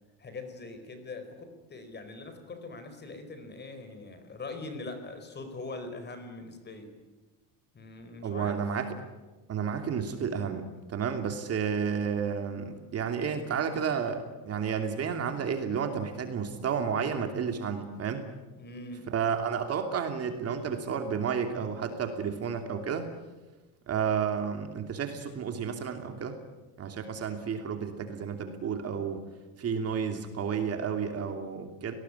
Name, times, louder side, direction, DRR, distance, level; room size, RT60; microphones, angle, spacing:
voice 1, 0.2-6.9 7.7-8.7 18.5-19.1, left 3 dB, 25° left, 8 dB, 4.5 m, -42 dB
voice 2, 8.2-9.0 9.5-18.2 19.1-23.1 23.9-26.4 26.8-29.2 29.6-31.9, right 7 dB, 35° right, 6 dB, 2.9 m, -31 dB
27.5 x 19.0 x 9.9 m, 1.2 s
cardioid pair, 150°, 42 cm